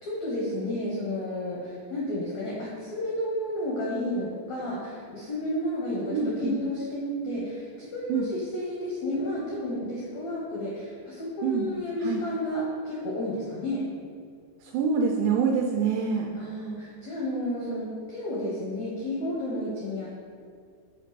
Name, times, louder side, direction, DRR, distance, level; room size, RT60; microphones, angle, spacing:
voice 1, 0.0-13.8 16.3-20.1, left 1 dB, 75° left, -5 dB, 1.6 m, -31 dB
voice 2, 6.1-6.6 8.1-8.3 11.4-11.7 12.0-12.2 14.6-16.3, right 5 dB, 85° right, 1 dB, 2.5 m, -26 dB
7.4 x 5.6 x 5.2 m, 2.2 s
omnidirectional pair, 5.4 m